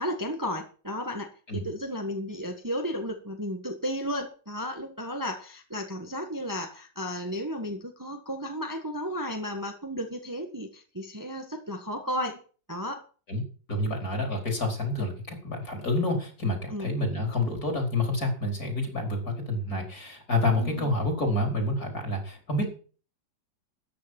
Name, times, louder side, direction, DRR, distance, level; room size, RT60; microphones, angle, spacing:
voice 1, 0.0-1.3 1.6-12.4 12.7-13.0 16.7-16.9 20.4-20.9, equal, 10° right, 4 dB, 1.5 m, -33 dB
voice 2, 13.7-22.7, left 2 dB, 50° left, 3 dB, 5.0 m, -28 dB
13.5 x 9.8 x 6.1 m, 0.39 s
omnidirectional pair, 2.0 m